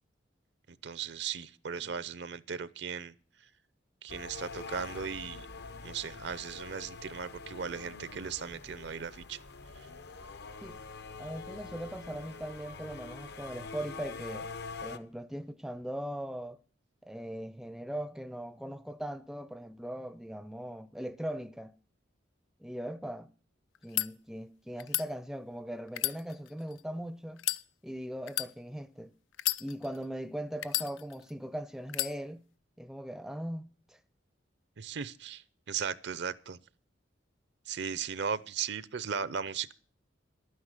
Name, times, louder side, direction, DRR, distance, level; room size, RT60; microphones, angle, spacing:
voice 1, 0.8-3.1 4.0-5.5 5.8-9.4 9.8-9.9 34.8-36.6 37.7-39.7, right 6 dB, 65° right, 0.6 m, -37 dB
sound 1, 4.1-15.0, left 4 dB, 60° left, 0.8 m, -45 dB
voice 2, 11.2-14.5 14.8-16.6 17.0-21.7 22.6-23.3 23.8-27.4 27.8-29.1 29.6-32.4 32.8-34.0, equal, ahead, 0.5 m, -40 dB
sound 2, 23.7-24.1 24.8-25.1 25.9-26.8 27.4-27.6 28.3-28.5 29.3-30.0 30.6-31.3 31.9-32.1, left 15 dB, 85° left, 0.5 m, -32 dB
11.5 x 9.6 x 6.6 m
head